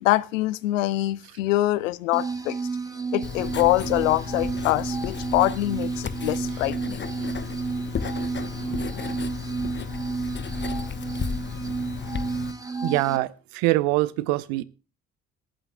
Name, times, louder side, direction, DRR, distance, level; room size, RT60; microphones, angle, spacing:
voice 1, 0.0-2.6 3.1-7.1, left 16 dB, 75° left, 0.5 m, -24 dB
sound 1, 2.1-13.2, right 4 dB, 10° right, 1.5 m, -32 dB
Writing, 3.2-12.5, left 6 dB, 30° left, 0.9 m, -34 dB
sound 2, 3.4-9.2, right 1 dB, 35° right, 6.2 m, -47 dB
voice 2, 12.8-14.6, right 18 dB, 65° right, 0.7 m, -24 dB
26.5 x 8.8 x 2.2 m
figure-of-eight pair, 40°, 39 cm